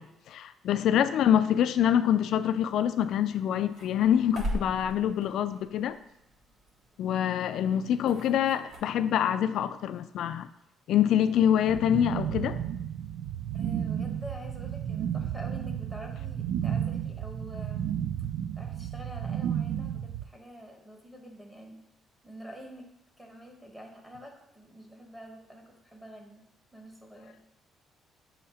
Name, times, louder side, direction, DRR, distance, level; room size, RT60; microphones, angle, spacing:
voice 1, 0.0-6.0 7.0-10.5 10.9-12.6, left 10 dB, 65° left, 12 dB, 0.3 m, -25 dB
sound 1, 2.5-8.8, equal, 50° right, 1.2 m, -41 dB
sound 2, 11.7-20.2, right 9 dB, 80° right, 0.3 m, -32 dB
voice 2, 13.5-18.0 18.5-21.8 22.2-22.9 23.2-26.4 26.7-27.4, equal, 10° right, 1 dB, 1.0 m, -47 dB
6.7 x 2.8 x 5.6 m, 0.81 s
cardioid pair, 150°, 0 cm